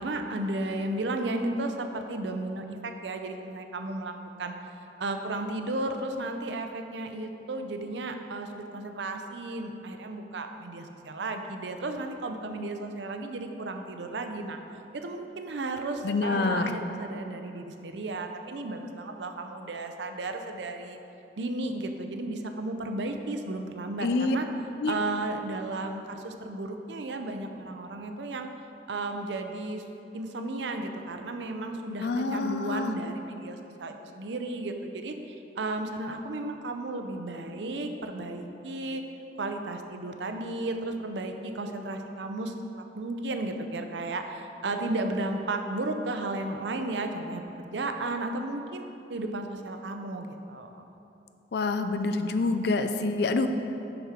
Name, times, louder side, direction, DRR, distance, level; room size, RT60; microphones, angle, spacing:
voice 1, 0.0-4.1 4.4-4.5 5.0-14.6 14.9-21.0 21.4-24.5 24.9-28.5 28.9-29.9 30.1-39.0 39.4-42.5 42.9-48.8 49.1-50.9, right 2 dB, 75° right, 6 dB, 0.6 m, -34 dB
voice 2, 16.0-16.6 24.0-24.4 24.8-25.0 32.0-32.9 51.5-53.5, left 3 dB, 65° left, 8 dB, 0.5 m, -27 dB
6.5 x 6.1 x 4.9 m, 2.9 s
head